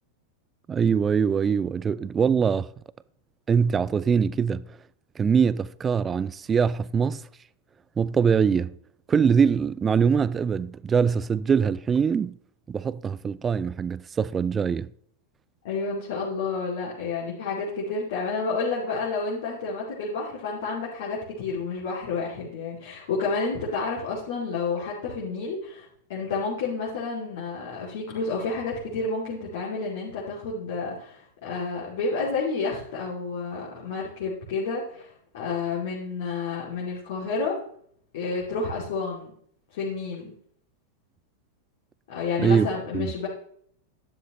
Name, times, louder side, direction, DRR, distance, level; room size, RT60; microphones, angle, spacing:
voice 1, 0.7-2.7 3.5-4.6 5.2-7.2 8.0-8.7 9.1-12.3 12.7-14.9 42.4-42.7 42.9-43.1, right 6 dB, 20° right, 0.3 m, -23 dB
voice 2, 15.6-37.6 38.1-39.3 39.7-40.3 42.1-43.3, left 4 dB, 55° left, 2.6 m, -30 dB
11.5 x 9.9 x 3.1 m
figure-of-eight pair, 90°, 0 cm